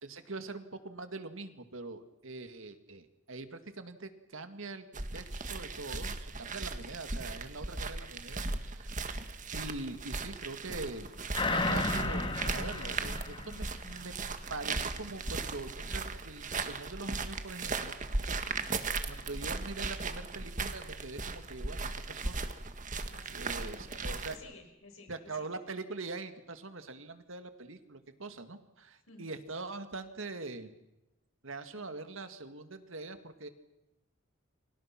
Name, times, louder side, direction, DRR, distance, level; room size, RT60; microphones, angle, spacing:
voice 1, 0.0-9.0 9.5-11.1 11.5-14.1 14.5-18.0 19.0-22.4 23.3-24.4 25.1-30.7 31.4-33.5, right 3 dB, 70° right, 9 dB, 2.1 m, -43 dB
sound 1, 4.9-24.3, right 3 dB, 40° right, 1.7 m, -37 dB
sound 2, 11.3-14.3 14.6-14.7, left 2 dB, 25° left, 1.8 m, -33 dB
voice 2, 18.4-18.7 23.1-25.5 29.1-29.3 31.7-31.8, left 3 dB, 80° left, 4 dB, 6.0 m, -55 dB
29.5 x 24.5 x 6.0 m, 0.94 s
head